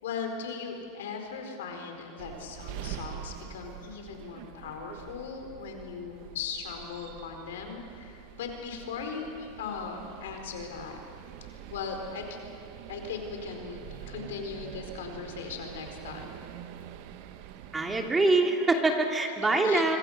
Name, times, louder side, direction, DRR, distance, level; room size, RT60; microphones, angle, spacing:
voice 1, 0.0-11.0 11.4-12.4 12.9-16.3 19.6-20.0, left 5 dB, 80° left, 4 dB, 4.6 m, -38 dB
sound 1, 2.2-18.1, right 11 dB, 60° right, 1.5 m, -45 dB
voice 2, 17.7-20.0, right 2 dB, 15° right, 2 dB, 2.7 m, -24 dB
26.0 x 25.0 x 6.7 m, 2.6 s
hypercardioid pair, 115°, 0 cm